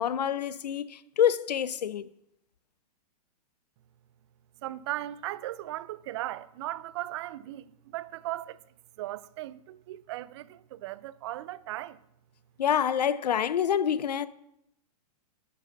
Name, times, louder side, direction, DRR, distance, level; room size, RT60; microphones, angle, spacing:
voice 1, 0.0-2.1 12.6-14.3, left 9 dB, 90° left, 0.5 m, -27 dB
voice 2, 4.6-8.6 9.0-12.0, right 15 dB, 45° right, 0.4 m, -37 dB
8.1 x 4.8 x 5.8 m
hypercardioid pair, 135°, 20 cm